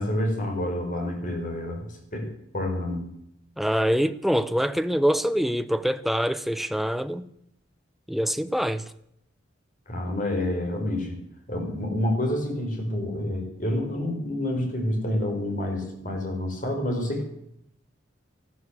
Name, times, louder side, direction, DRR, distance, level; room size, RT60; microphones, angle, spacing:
voice 1, 0.0-2.3 2.5-3.1 9.9-11.2 11.5-17.3, left 1 dB, 40° left, 4.9 m, -28 dB
voice 2, 3.6-7.3 8.1-8.8, equal, ahead, 0.6 m, -25 dB
14.5 x 12.5 x 8.1 m
head